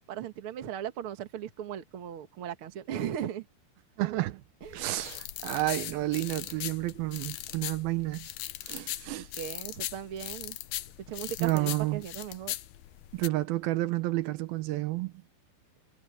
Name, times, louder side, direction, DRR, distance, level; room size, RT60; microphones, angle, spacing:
voice 1, 0.1-3.5 4.6-4.8 9.2-10.6 11.1-12.5, right 10 dB, 50° right, 1.7 m, -37 dB
voice 2, 4.0-4.4 4.7-8.3 8.7-9.3 11.4-12.0 13.1-15.1, right 18 dB, 80° right, 2.5 m, -30 dB
sound 1, 4.6-13.3, left 15 dB, 85° left, 2.9 m, -39 dB
omnidirectional pair, 4.4 m